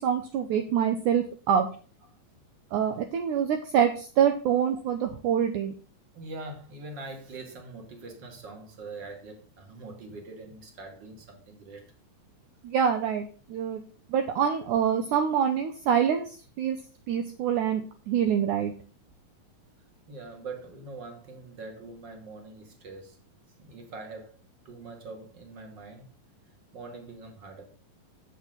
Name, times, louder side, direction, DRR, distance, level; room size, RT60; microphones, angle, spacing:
voice 1, 0.0-1.7 2.7-5.7 12.6-13.8 14.1-16.8 17.1-18.7, right 8 dB, 75° right, 2.0 m, -26 dB
voice 2, 6.1-11.9 20.1-23.2 23.6-24.4 24.6-26.1 26.7-27.6, right 3 dB, 35° right, 2.5 m, -43 dB
11.0 x 7.9 x 3.9 m
omnidirectional pair, 4.2 m